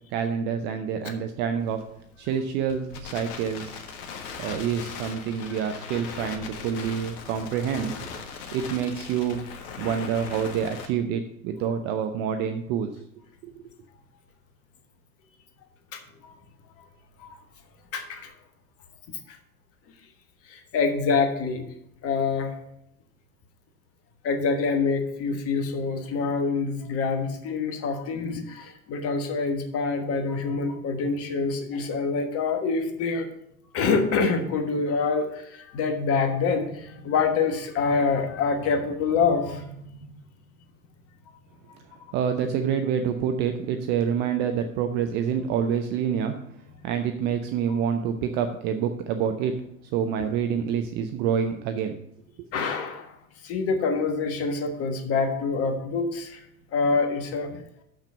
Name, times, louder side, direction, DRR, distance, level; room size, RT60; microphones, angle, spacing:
voice 1, 0.1-1.8 2.2-3.7 4.4-7.9 8.5-9.4 9.8-12.9 13.4-13.5 42.1-46.4 46.8-49.6 49.9-52.0 52.4-52.5, right 7 dB, 25° right, 7 dB, 0.4 m, -27 dB
Crackle, 1.6-10.9, left 5 dB, 50° left, 1.5 m, -39 dB
voice 2, 15.9-16.4 17.2-17.4 17.9-18.3 19.3-19.4 20.4-21.7 22.0-22.5 24.2-33.3 33.7-39.7 41.3-41.4 47.7-47.8 52.5-53.2 53.4-56.4 56.7-57.6, left 4 dB, 30° left, 6 dB, 1.4 m, -26 dB
6.6 x 6.1 x 6.8 m, 0.75 s
figure-of-eight pair, 100°, 44 cm